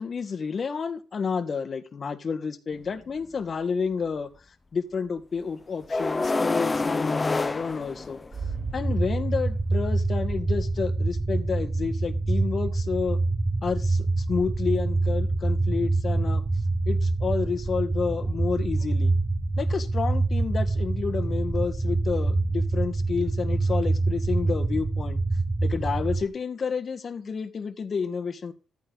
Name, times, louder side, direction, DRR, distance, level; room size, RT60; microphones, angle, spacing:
voice 1, 0.0-4.3 4.7-8.2 8.7-13.2 13.6-16.4 16.9-19.1 19.6-25.2 25.6-28.5, left 5 dB, 45° left, 1.6 m, -30 dB
sound 1, 2.7-2.8 5.9-8.6, left 3 dB, 25° left, 0.6 m, -27 dB
sound 2, 8.3-26.3, right 2 dB, 20° right, 1.4 m, -26 dB
13.5 x 9.2 x 4.0 m
cardioid pair, 90°, 0 cm